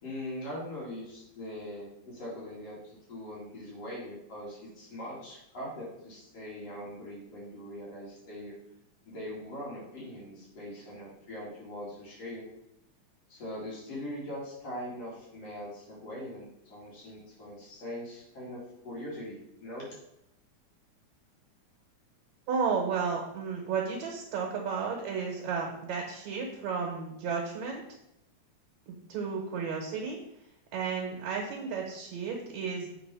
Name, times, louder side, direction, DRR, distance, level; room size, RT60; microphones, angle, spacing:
voice 1, 0.0-8.6 9.1-12.4 13.3-19.9, left 1 dB, 55° left, -6 dB, 3.3 m, -41 dB
voice 2, 22.5-27.8 28.9-30.2 30.7-32.9, right 5 dB, 70° right, 0 dB, 2.3 m, -33 dB
7.4 x 4.1 x 5.4 m, 0.86 s
omnidirectional pair, 3.5 m